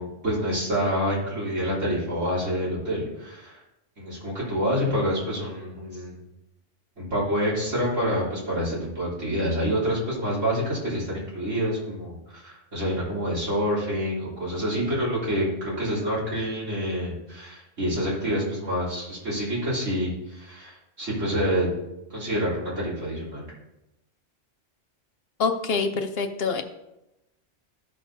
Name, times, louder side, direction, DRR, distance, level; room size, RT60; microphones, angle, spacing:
voice 1, 0.0-3.6 4.0-6.2 7.0-21.7 22.1-23.4, equal, 80° right, -7 dB, 3.6 m, -27 dB
voice 2, 25.4-26.6, left 4 dB, 60° left, 7 dB, 0.8 m, -25 dB
14.0 x 6.2 x 2.7 m, 0.90 s
omnidirectional pair, 1.3 m